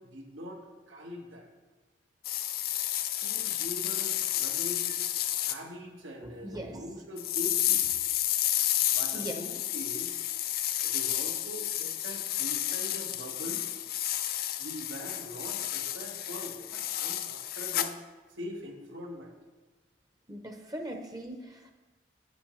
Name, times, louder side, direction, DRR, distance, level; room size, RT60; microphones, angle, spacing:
voice 1, 0.0-1.5 3.2-5.1 5.4-7.8 8.9-10.3 10.8-13.7 14.6-18.0 18.4-19.3, equal, 85° right, 1 dB, 1.5 m, -43 dB
sound 1, 2.2-5.6 7.2-17.9, left 12 dB, 50° left, 0.4 m, -31 dB
voice 2, 6.2-6.8 9.1-9.3 20.3-21.7, right 1 dB, 20° right, 4 dB, 0.7 m, -40 dB
9.2 x 9.1 x 3.1 m, 1.2 s
head